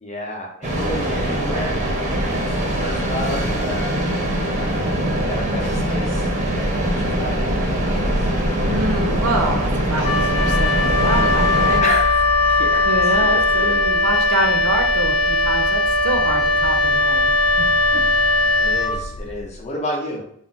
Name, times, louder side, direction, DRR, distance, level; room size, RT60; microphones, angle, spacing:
voice 1, 0.0-1.8 2.2-4.2 5.1-8.2 11.8-13.8 18.6-20.2, left 1 dB, 30° left, -2 dB, 0.6 m, -31 dB
sound 1, 0.6-11.8, right 1 dB, 30° right, 0.5 m, -22 dB
voice 2, 4.9-5.3 8.6-11.9 12.8-17.3 17.6-18.0, right 2 dB, 80° right, 3 dB, 0.5 m, -26 dB
Wind instrument woodwind instrument, 10.0-19.5, left 2 dB, 80° left, 0.4 m, -19 dB
2.4 x 2.0 x 3.8 m, 0.67 s
head